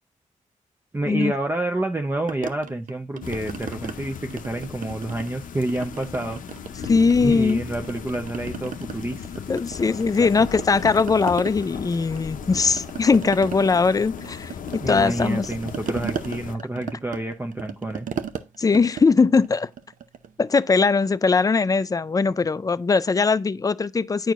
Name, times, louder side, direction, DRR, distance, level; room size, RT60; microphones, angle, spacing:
voice 1, 0.9-6.4 7.2-9.2 10.1-10.5 14.8-18.1, right 1 dB, 15° right, 0.6 m, -28 dB
sound 1, 2.3-4.0 4.3-5.4 5.7-7.5 7.8-10.2 10.5-20.4, right 7 dB, 70° right, 0.6 m, -36 dB
sound 2, 3.2-16.5, left 7 dB, 75° left, 0.6 m, -37 dB
voice 2, 6.8-7.6 9.5-15.5 18.6-19.7 20.4-24.3, left 4 dB, 25° left, 0.4 m, -20 dB
9.1 x 4.5 x 2.4 m
cardioid pair, 60°, 14 cm